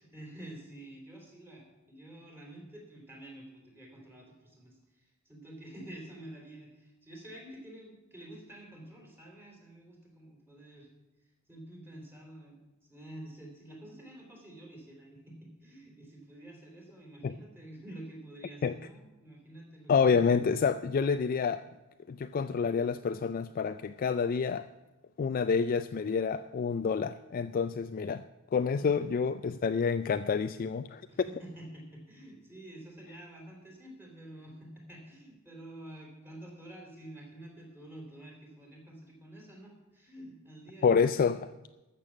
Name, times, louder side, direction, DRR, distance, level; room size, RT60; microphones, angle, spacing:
voice 1, 0.0-10.9 11.5-12.6 12.9-19.9 28.8-29.1 31.1-41.2, right 1 dB, 10° right, 3.4 m, -49 dB
voice 2, 19.9-21.6 22.1-24.7 25.2-28.2 28.5-31.0 40.8-41.5, left 5 dB, 40° left, 0.3 m, -28 dB
13.5 x 6.8 x 7.4 m
head